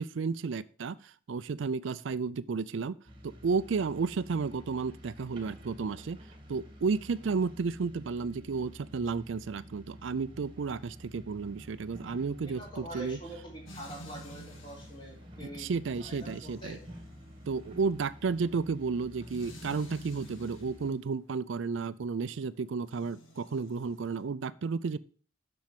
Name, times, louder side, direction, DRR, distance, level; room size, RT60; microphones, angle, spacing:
voice 1, 0.0-3.0 3.2-6.2 6.5-13.2 15.4-16.8 17.5-25.0, right 5 dB, 70° right, 16 dB, 0.4 m, -32 dB
sound 1, 3.1-20.9, equal, 25° right, 1.7 m, -50 dB
voice 2, 12.4-15.7 16.0-16.8, right 1 dB, 25° left, -2 dB, 3.8 m, -45 dB
sound 2, 13.7-20.9 22.8-24.2, equal, 80° left, 2.0 m, -51 dB
7.4 x 6.3 x 7.3 m, 0.43 s
head